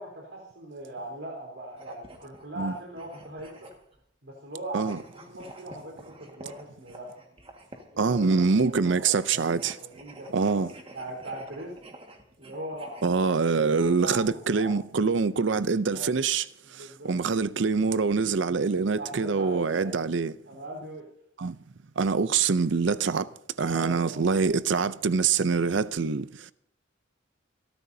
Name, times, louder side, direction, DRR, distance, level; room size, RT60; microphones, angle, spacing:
voice 1, 0.0-3.7 4.2-7.3 8.1-9.4 9.8-10.7 10.9-11.7 12.4-14.7 15.6-16.1 16.8-17.1 19.0-20.0 20.4-21.1 23.6-24.2, right 1 dB, 85° right, 4.1 m, -40 dB
sound 1, 1.7-4.0 4.8-8.0 9.1-13.0, right 1 dB, 30° right, 1.8 m, -49 dB
voice 2, 8.0-9.8 10.3-10.7 13.0-16.4 16.7-20.3 21.4-21.6 22.0-23.3 23.6-26.5, right 5 dB, 70° right, 0.6 m, -25 dB
28.5 x 13.5 x 2.8 m
head